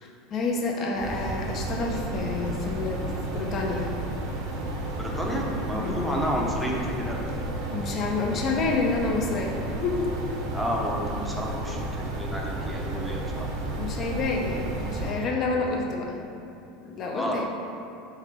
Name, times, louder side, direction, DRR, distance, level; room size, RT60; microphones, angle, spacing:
voice 1, 0.3-3.0 3.3-3.9 5.7-6.1 7.7-10.0 13.8-16.2 16.8-17.5, left 3 dB, 40° left, 0 dB, 0.7 m, -28 dB
sound 1, 0.9-15.1, right 2 dB, 70° right, 0.8 m, -32 dB
voice 2, 4.9-7.2 10.5-13.5 17.1-17.4, equal, ahead, -3 dB, 0.7 m, -31 dB
3.9 x 2.7 x 4.4 m, 2.7 s
supercardioid pair, 105°, 0 cm